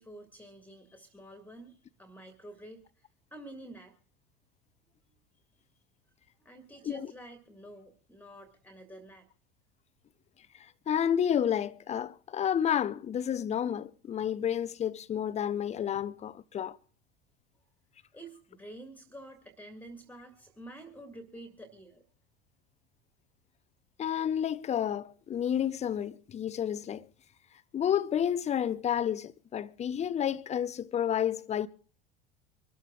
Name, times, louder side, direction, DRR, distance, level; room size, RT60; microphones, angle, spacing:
voice 1, 0.0-2.8 3.3-3.9 6.4-9.3 18.1-22.0, right 1 dB, 5° left, 2.0 m, -49 dB
voice 2, 10.9-16.8 24.0-27.1 27.7-31.7, left 9 dB, 20° left, 0.7 m, -30 dB
25.5 x 13.0 x 2.4 m
figure-of-eight pair, 75°, 30 cm